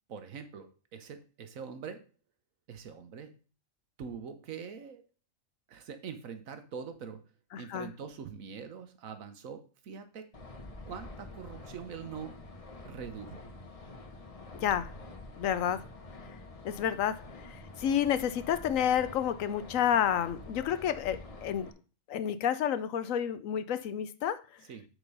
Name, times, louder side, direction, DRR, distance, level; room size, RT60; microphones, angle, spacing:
voice 1, 0.1-2.1 2.7-3.3 4.0-5.0 5.7-7.2 7.6-10.3 10.9-12.4 12.8-13.5 24.7-24.9, right 6 dB, 80° right, 1.4 m, -43 dB
voice 2, 7.5-7.9 14.5-14.9 15.4-15.9 16.6-21.7 22.1-24.6, left 9 dB, 75° left, 1.1 m, -30 dB
sound 1, 10.3-21.7, left 2 dB, 30° left, 0.9 m, -47 dB
8.1 x 4.5 x 5.4 m
omnidirectional pair, 1.4 m